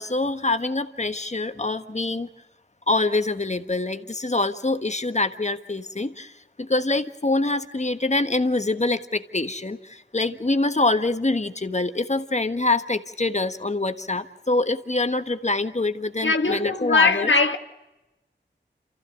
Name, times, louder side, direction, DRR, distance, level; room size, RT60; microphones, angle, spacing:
voice 1, 0.0-2.3 2.9-6.3 6.6-17.3, left 2 dB, 35° left, 1.4 m, -25 dB
voice 2, 16.2-17.6, left 3 dB, 80° left, 1.6 m, -20 dB
28.0 x 15.0 x 8.0 m
wide cardioid pair, 50°, 19 cm